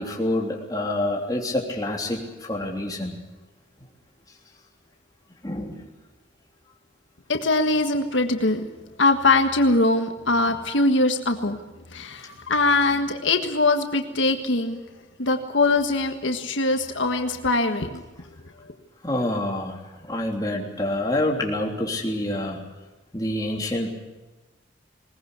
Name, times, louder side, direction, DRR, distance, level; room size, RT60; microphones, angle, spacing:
voice 1, 0.0-3.2 5.4-5.9 11.5-11.6 19.0-22.6 23.1-23.9, left 1 dB, 20° left, 0 dB, 3.3 m, -27 dB
voice 2, 7.3-8.6 9.0-11.6 11.9-14.8 15.2-18.0 18.6-18.7, left 2 dB, 80° left, 5 dB, 1.6 m, -22 dB
21.0 x 19.5 x 8.2 m, 1.2 s
head